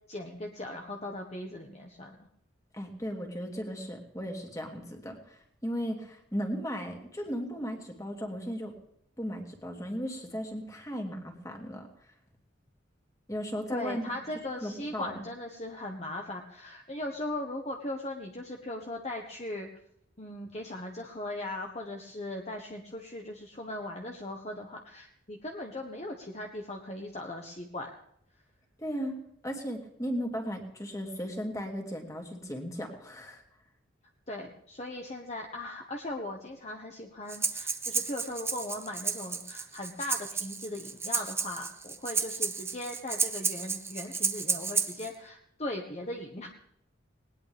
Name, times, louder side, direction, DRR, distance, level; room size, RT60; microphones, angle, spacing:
voice 1, 0.1-2.3 13.7-19.7 20.2-27.9 34.3-46.5, left 1 dB, 35° left, 1 dB, 1.5 m, -38 dB
voice 2, 2.7-8.7 9.2-11.9 13.3-14.0 14.6-15.1 28.8-29.2 29.4-33.4, equal, 15° left, 2 dB, 2.8 m, -36 dB
Breathing, 37.3-45.1, right 5 dB, 15° right, 0.8 m, -32 dB
20.0 x 19.5 x 3.6 m, 0.72 s
head